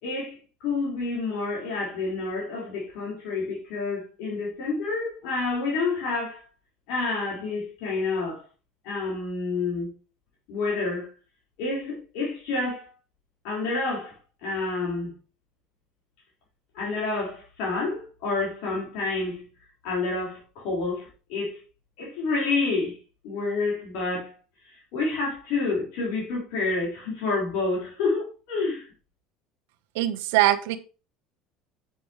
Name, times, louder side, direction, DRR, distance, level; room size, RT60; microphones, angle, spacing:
voice 1, 0.0-6.4 6.9-8.4 8.8-9.9 10.5-11.1 11.6-12.9 13.4-15.1 16.7-19.5 19.8-21.6 22.0-23.0 23.2-24.3 24.7-28.9, left 3 dB, 70° left, 4.2 m, -29 dB
voice 2, 30.0-30.8, right 14 dB, 80° right, 0.9 m, -22 dB
8.1 x 7.8 x 3.1 m
supercardioid pair, 95°, 0 cm